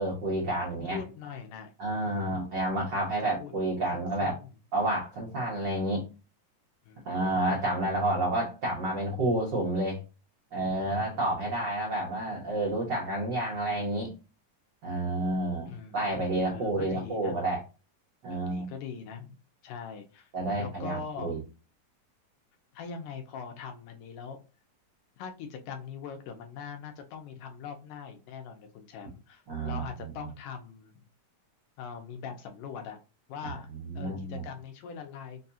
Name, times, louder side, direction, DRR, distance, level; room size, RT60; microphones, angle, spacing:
voice 1, 0.0-1.0 1.8-4.3 4.7-6.0 7.0-10.0 10.5-14.1 14.8-17.6 18.2-18.7 20.3-21.4 29.5-29.8 33.4-34.4, right 1 dB, 90° right, -4 dB, 0.9 m, -30 dB
voice 2, 0.7-1.7 2.1-2.4 3.4-3.5 3.9-4.5 6.9-7.2 11.8-11.9 15.7-16.0 16.5-17.4 18.3-19.4 19.6-20.3 20.6-21.4 22.7-24.4 25.2-31.0 31.8-33.0 33.3-33.7 33.9-35.4, left 6 dB, 75° left, 5 dB, 2.0 m, -42 dB
5.4 x 2.3 x 2.7 m, 0.31 s
omnidirectional pair, 4.0 m